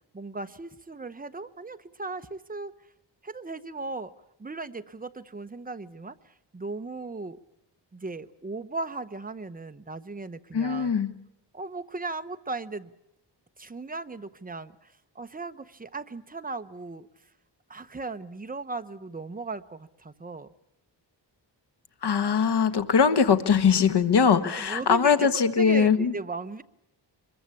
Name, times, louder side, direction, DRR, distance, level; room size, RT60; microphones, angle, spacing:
voice 1, 0.1-2.7 3.2-4.1 4.4-7.4 7.9-10.9 11.5-12.9 13.6-17.1 17.7-20.5 24.6-26.6, right 3 dB, 20° right, 10 dB, 0.9 m, -37 dB
voice 2, 10.5-11.1 22.0-26.1, left 6 dB, 65° left, 11 dB, 1.5 m, -21 dB
24.0 x 22.0 x 8.4 m, 0.80 s
wide cardioid pair, 115°, 43 cm